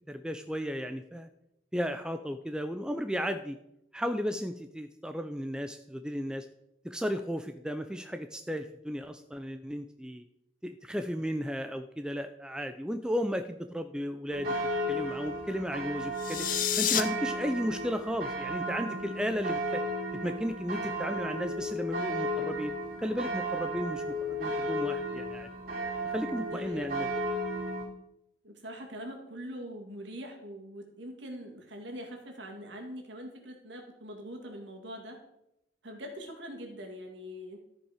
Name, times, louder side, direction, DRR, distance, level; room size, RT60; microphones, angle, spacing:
voice 1, 0.1-1.3 1.7-3.6 3.9-6.5 6.8-10.2 10.6-14.5 14.9-16.5 16.8-19.8 20.2-22.7 23.0-24.0 24.3-25.5 26.1-27.1, equal, 5° right, 8 dB, 0.3 m, -34 dB
sound 1, 14.3-27.8, equal, 50° right, 3.2 m, -34 dB
sound 2, 16.1-17.0, left 10 dB, 45° left, 0.6 m, -28 dB
voice 2, 26.5-27.1 28.4-35.2 35.8-37.6, equal, 65° right, 2 dB, 2.1 m, -43 dB
13.5 x 5.3 x 5.0 m, 0.83 s
head